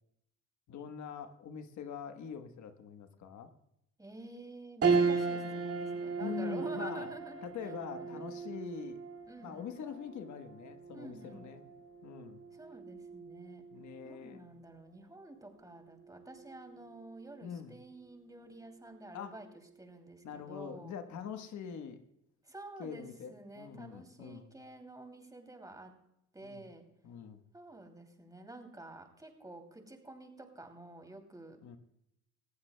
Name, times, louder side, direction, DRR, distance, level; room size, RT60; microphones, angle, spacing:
voice 1, 0.7-3.5 6.2-7.1 7.4-9.0 9.4-11.6 12.0-12.4 13.7-14.4 17.4-17.8 19.1-19.3 20.2-22.0 22.8-24.5 26.4-26.7 27.0-27.4 31.6-31.8, left 7 dB, 70° left, 8 dB, 1.2 m, -44 dB
voice 2, 4.0-7.7 8.0-8.2 9.3-9.7 10.9-11.5 12.5-13.6 14.0-19.5 19.8-21.0 22.4-25.9 26.3-26.8 27.5-31.6, right 2 dB, 10° right, 5 dB, 2.7 m, -50 dB
sound 1, 4.8-14.4 14.9-15.0 16.3-16.8, right 5 dB, 50° right, 2.3 m, -36 dB
19.5 x 15.0 x 2.2 m, 0.78 s
cardioid pair, 90°, 30 cm